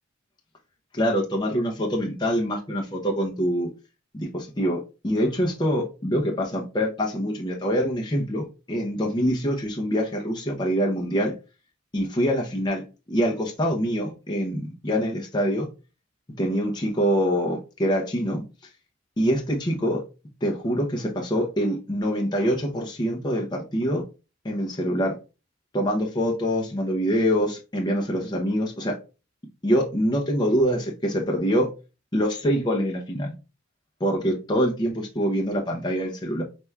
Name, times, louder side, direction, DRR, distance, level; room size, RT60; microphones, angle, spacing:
voice 1, 0.9-3.7 4.1-11.3 11.9-15.7 16.4-18.4 19.2-20.0 20.4-24.0 24.4-25.1 25.7-29.0 29.6-31.7 32.1-33.3 34.0-36.4, equal, 20° left, 0.7 m, -25 dB
5.8 x 3.3 x 2.3 m
head